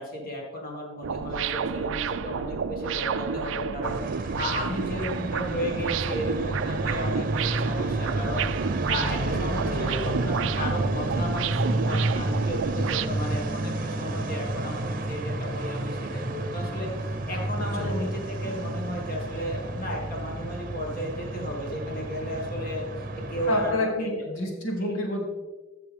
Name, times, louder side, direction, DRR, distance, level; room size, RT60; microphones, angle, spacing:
voice 1, 0.0-24.3 24.8-24.9, equal, 45° left, -1 dB, 1.8 m, -34 dB
sound 1, 1.0-13.1, right 7 dB, 70° right, 0.4 m, -31 dB
sound 2, 3.8-23.7, right 1 dB, 45° right, 0.8 m, -30 dB
voice 2, 9.6-10.1 17.8-18.0 23.5-25.2, left 2 dB, 90° left, -1 dB, 2.5 m, -29 dB
13.5 x 6.8 x 3.5 m, 1.3 s
head